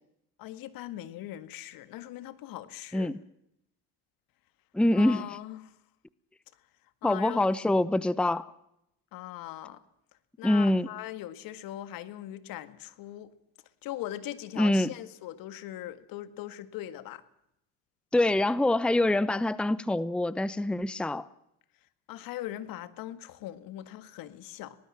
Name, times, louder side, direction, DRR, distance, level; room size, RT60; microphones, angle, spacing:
voice 1, 0.4-3.1 4.9-5.7 7.0-7.8 9.1-9.8 10.4-13.3 13.8-17.2 22.1-24.8, left 13 dB, 65° left, 1.9 m, -40 dB
voice 2, 4.7-5.2 7.0-8.5 10.4-10.9 14.6-14.9 18.1-21.2, left 1 dB, 5° left, 0.8 m, -25 dB
23.5 x 19.0 x 7.5 m
supercardioid pair, 80°, 37 cm